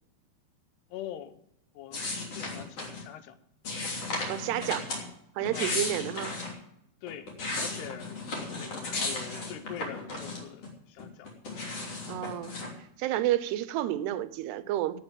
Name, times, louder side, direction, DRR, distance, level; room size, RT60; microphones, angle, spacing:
voice 1, 0.9-1.4 1.7-2.0 2.3-3.4 5.5-5.7 7.0-7.3 7.6-11.3 11.6-11.8, left 11 dB, 80° left, 2.9 m, -43 dB
sound 1, 1.9-3.0 3.7-5.0 5.4-6.5 7.1-10.7 11.0-12.7, left 2 dB, 40° left, 3.7 m, -35 dB
voice 2, 4.2-4.9 5.4-6.3 12.1-15.0, right 13 dB, 80° right, 2.8 m, -31 dB
17.0 x 6.9 x 7.6 m
omnidirectional pair, 4.8 m